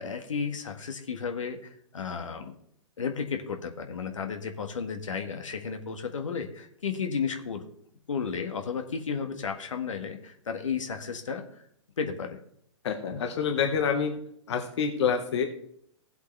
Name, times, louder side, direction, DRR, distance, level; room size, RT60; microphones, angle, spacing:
voice 1, 0.0-2.5 3.0-7.6 8.1-11.6 12.0-12.4, left 6 dB, 80° left, 5 dB, 1.7 m, -33 dB
voice 2, 12.8-14.1 14.5-15.5, left 6 dB, 65° left, 5 dB, 1.4 m, -27 dB
16.0 x 8.0 x 3.3 m, 0.69 s
hypercardioid pair, 125°, 16 cm